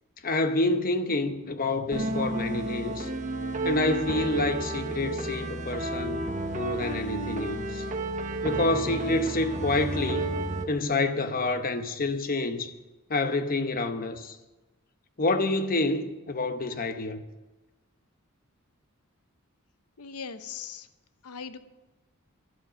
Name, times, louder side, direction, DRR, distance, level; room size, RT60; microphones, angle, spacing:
voice 1, 0.2-3.1 3.6-6.2 6.5-7.8 8.4-10.3 10.7-12.7 13.1-14.4 15.2-17.2, left 2 dB, 40° left, 0.9 m, -28 dB
sound 1, 1.9-10.7, right 2 dB, 35° right, 1.2 m, -31 dB
voice 2, 20.0-20.9 21.2-21.6, left 6 dB, 90° left, 0.9 m, -39 dB
12.0 x 11.5 x 6.2 m
head